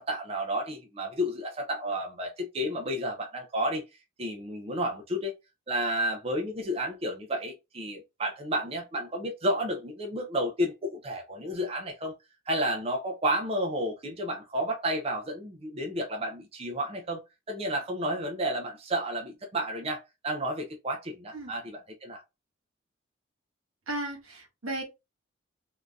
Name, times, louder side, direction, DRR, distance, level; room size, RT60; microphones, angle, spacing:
voice 1, 0.0-3.9 4.2-5.3 5.7-12.1 12.5-22.2, equal, 30° right, 0.5 m, -31 dB
voice 2, 23.9-24.8, right 1 dB, 85° right, 1.4 m, -35 dB
3.6 x 2.6 x 2.3 m
head